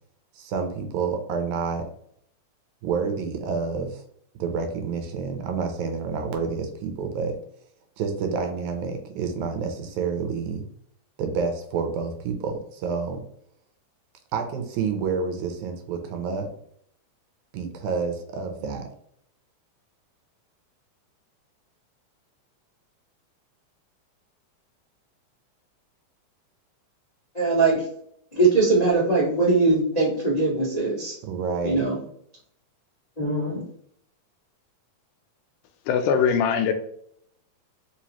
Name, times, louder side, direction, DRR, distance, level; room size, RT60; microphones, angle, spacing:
voice 1, 0.4-1.8 2.8-4.0 4.4-7.4 8.0-10.6 11.2-13.2 14.3-16.5 17.5-18.9 31.2-31.9, right 5 dB, 80° right, 4 dB, 2.0 m, -28 dB
voice 2, 27.3-27.8 28.3-31.1 31.6-32.0 33.2-33.6, right 3 dB, 55° left, -9 dB, 0.4 m, -21 dB
voice 3, 35.9-36.7, left 7 dB, 85° left, 8 dB, 2.0 m, -21 dB
4.7 x 3.1 x 2.9 m, 0.68 s
omnidirectional pair, 3.5 m